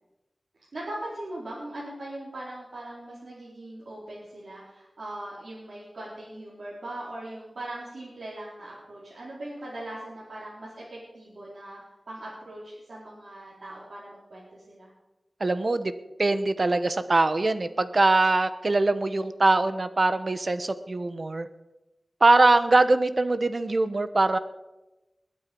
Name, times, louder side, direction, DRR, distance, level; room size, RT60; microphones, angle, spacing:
voice 1, 0.7-11.8 12.1-14.9, right 1 dB, 85° right, -8 dB, 4.6 m, -40 dB
voice 2, 15.4-15.9 16.2-21.5 22.2-24.4, right 2 dB, 55° right, 11 dB, 1.1 m, -22 dB
21.5 x 9.1 x 5.4 m, 1.0 s
wide cardioid pair, 65°, 0 cm